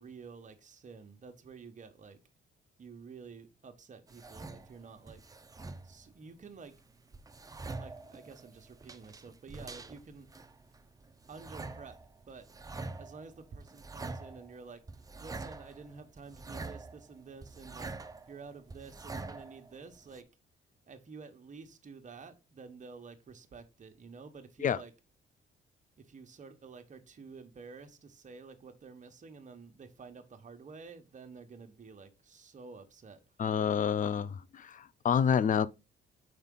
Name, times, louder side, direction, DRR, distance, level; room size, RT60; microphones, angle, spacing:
voice 1, 0.0-2.2 2.8-5.2 5.8-6.7 7.8-10.3 11.3-12.0 12.3-12.5 13.0-14.8 15.2-17.9 18.3-20.3 20.9-24.9 26.0-33.2, right 5 dB, 40° right, 1.2 m, -50 dB
sound 1, 4.1-6.1 6.4-20.2, right 3 dB, 20° right, 0.6 m, -46 dB
voice 2, 33.4-35.7, left 7 dB, 40° left, 0.5 m, -28 dB
5.7 x 4.6 x 3.8 m
cardioid pair, 90°, 20 cm